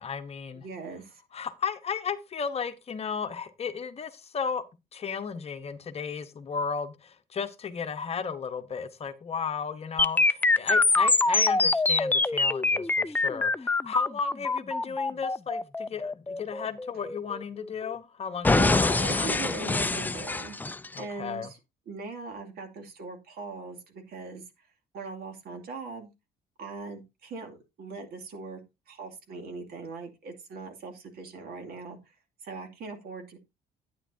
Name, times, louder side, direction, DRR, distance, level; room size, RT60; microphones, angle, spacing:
voice 1, 0.0-0.6 1.3-4.6 4.9-19.4 20.9-21.5, left 6 dB, 40° left, 1.0 m, -34 dB
voice 2, 0.5-1.2 18.5-20.7 20.9-21.6 21.9-24.4 24.9-26.1 26.6-28.6 28.9-32.1 32.4-33.4, right 4 dB, 65° right, 2.6 m, -40 dB
sound 1, 10.0-17.9 18.4-21.0, left 3 dB, 10° left, 0.4 m, -25 dB
10.0 x 9.4 x 2.7 m
cardioid pair, 110°, 17 cm